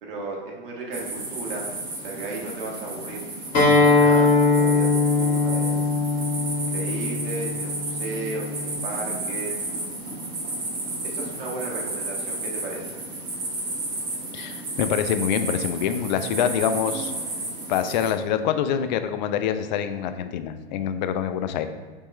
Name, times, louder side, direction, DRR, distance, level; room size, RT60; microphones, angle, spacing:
voice 1, 0.0-1.7 2.0-3.2 3.7-5.8 6.6-9.6 11.0-13.0, right 2 dB, 60° right, -1 dB, 1.3 m, -35 dB
sound 1, 0.9-18.1, right 2 dB, 30° right, 1.5 m, -32 dB
Acoustic guitar, 3.5-8.7, left 3 dB, 25° left, 1.5 m, -21 dB
voice 2, 14.3-17.1 17.7-21.7, left 9 dB, 50° left, 10 dB, 0.4 m, -25 dB
4.2 x 3.5 x 3.2 m, 1.5 s
hypercardioid pair, 110°, 30 cm